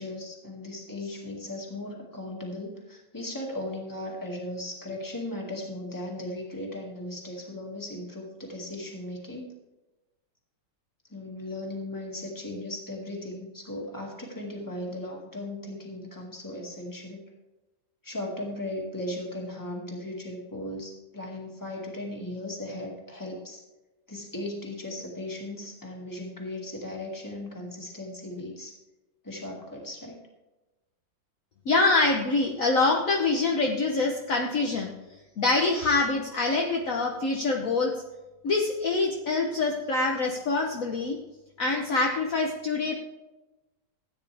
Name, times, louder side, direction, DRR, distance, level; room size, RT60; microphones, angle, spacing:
voice 1, 0.0-9.5 11.1-17.2 18.0-23.6 24.1-28.7 29.2-30.2, left 1 dB, 10° left, -1 dB, 2.0 m, -37 dB
voice 2, 31.7-34.9 35.4-37.9 38.4-41.2 41.6-42.9, left 3 dB, 55° left, 0 dB, 1.3 m, -25 dB
14.5 x 9.2 x 3.4 m, 1.1 s
omnidirectional pair, 1.9 m